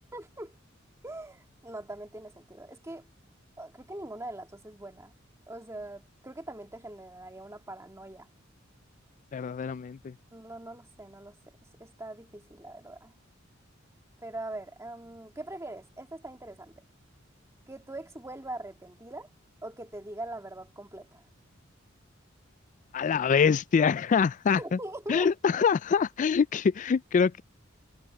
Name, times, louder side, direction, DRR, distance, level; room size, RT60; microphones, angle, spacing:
voice 1, 0.1-0.6 1.0-3.1 3.6-5.1 5.5-8.3 10.3-11.4 11.8-13.1 14.2-16.7 17.7-19.3 19.6-21.2 24.6-25.3, right 1 dB, 15° right, 1.8 m, -42 dB
voice 2, 9.3-10.1 22.9-24.8 25.1-27.4, left 6 dB, 40° left, 0.3 m, -25 dB
head